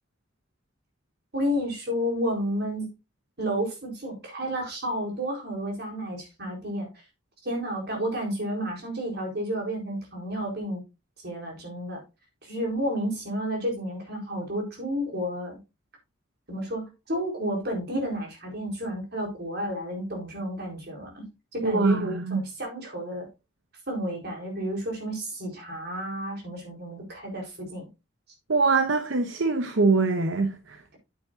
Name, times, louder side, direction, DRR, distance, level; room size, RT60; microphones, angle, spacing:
voice 1, 1.3-2.9 3.4-6.9 7.4-10.8 11.2-12.0 12.4-15.6 16.5-21.3 21.5-23.3 23.9-27.8, equal, 60° right, 4.2 m, -31 dB
voice 2, 21.6-22.4 28.5-30.8, right 3 dB, 80° right, 0.9 m, -23 dB
8.7 x 8.7 x 2.6 m
head